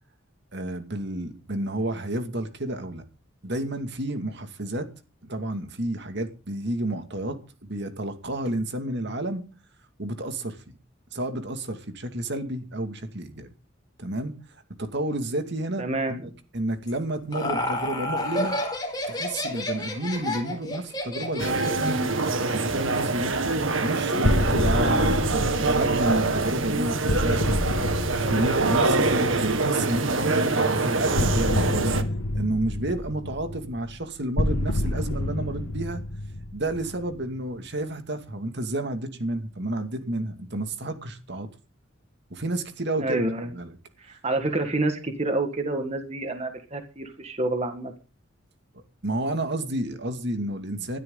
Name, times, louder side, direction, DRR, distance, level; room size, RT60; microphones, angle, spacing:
voice 1, 0.5-3.0 3.4-4.9 5.2-9.4 10.0-10.6 11.1-13.5 14.0-14.4 14.8-18.6 19.1-22.0 22.5-23.4 23.8-27.6 28.2-31.9 32.3-36.0 36.5-41.5 42.3-43.8 49.0-51.0, right 1 dB, 60° right, 2.4 m, -30 dB
voice 2, 15.8-16.2 43.0-43.5 44.0-47.9, right 2 dB, 35° right, 1.8 m, -28 dB
Laughter, 16.9-22.0, left 1 dB, 20° left, 4.3 m, -30 dB
sound 1, 21.4-32.0, right 3 dB, 80° right, 1.9 m, -25 dB
sound 2, 24.2-30.0 31.2-37.4, left 1 dB, 80° left, 1.5 m, -28 dB
20.5 x 12.5 x 4.0 m
head